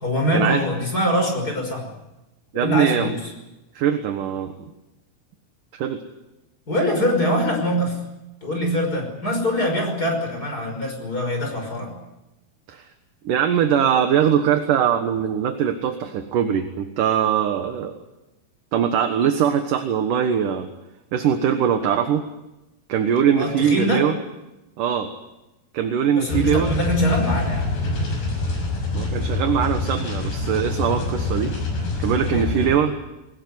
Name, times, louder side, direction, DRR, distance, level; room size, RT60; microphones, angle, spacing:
voice 1, 0.0-1.9 2.5-3.2 6.7-8.0 8.4-12.0 23.3-24.0 26.1-27.7 32.3-32.5, equal, 20° left, 3 dB, 5.9 m, -23 dB
voice 2, 2.5-3.1 3.7-4.5 5.7-6.0 12.7-12.9 13.2-18.0 18.7-20.7 21.1-22.2 22.9-24.2 24.8-25.1 25.7-26.7 28.9-31.5 32.0-32.9, right 8 dB, 65° right, 6 dB, 2.5 m, -21 dB
sound 1, 26.3-32.7, left 2 dB, 70° left, 8.4 m, -25 dB
21.5 x 20.0 x 9.6 m, 0.97 s
omnidirectional pair, 4.8 m